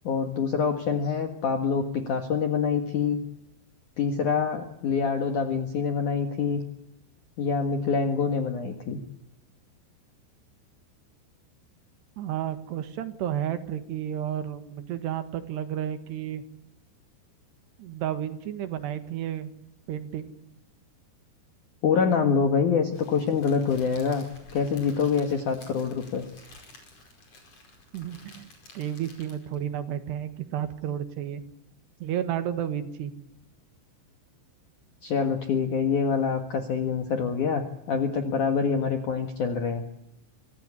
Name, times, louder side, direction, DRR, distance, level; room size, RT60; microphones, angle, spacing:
voice 1, 0.0-3.2 4.0-6.6 7.4-9.0 21.8-24.3 24.5-26.3 35.0-39.8, left 6 dB, 55° left, 6 dB, 2.4 m, -26 dB
voice 2, 12.2-16.4 17.8-19.5 19.9-20.3 27.9-28.5 28.8-31.4 32.0-33.1, right 10 dB, 65° right, 10 dB, 3.5 m, -32 dB
Crackle, 22.9-29.6, left 3 dB, 30° left, 5.8 m, -51 dB
25.0 x 16.5 x 9.9 m, 0.85 s
omnidirectional pair, 5.6 m